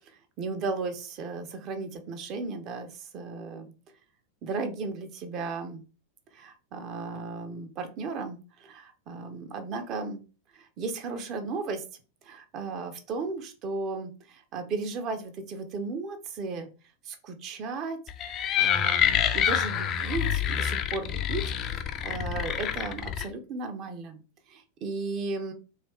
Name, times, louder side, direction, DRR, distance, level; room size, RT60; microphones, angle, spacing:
voice 1, 0.1-3.7 4.4-5.8 6.3-10.3 10.5-11.8 12.2-16.7 17.0-18.0 18.3-21.4 22.0-24.2 24.5-25.5, right 4 dB, 35° right, 6 dB, 0.8 m, -35 dB
sound 1, 18.1-23.3, left 9 dB, 30° left, 0.4 m, -27 dB
3.0 x 2.8 x 3.4 m, 0.34 s
figure-of-eight pair, 90°, 0 cm